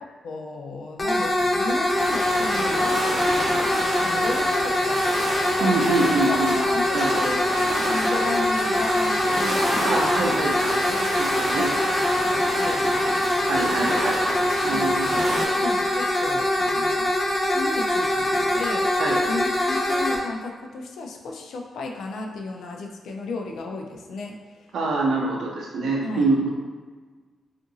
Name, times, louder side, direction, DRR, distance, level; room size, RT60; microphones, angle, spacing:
voice 1, 0.0-5.8 6.3-7.4 7.8-10.3 10.8-11.2 11.6-12.1 12.6-13.3 13.7-14.0 14.7-14.9 15.6-17.1 17.5-18.9 19.3-24.7 26.0-26.3, left 3 dB, 90° left, 2 dB, 0.3 m, -34 dB
sound 1, 1.0-20.2, left 1 dB, 30° left, 0.4 m, -23 dB
sound 2, 1.9-15.5, right 1 dB, 50° right, 0.9 m, -30 dB
voice 2, 5.6-6.5 6.9-7.4 9.8-10.9 11.2-11.7 13.5-15.6 19.0-19.2 24.7-26.5, right 3 dB, 70° right, -1 dB, 0.5 m, -25 dB
2.7 x 2.5 x 2.6 m, 1.4 s
wide cardioid pair, 165°, 0 cm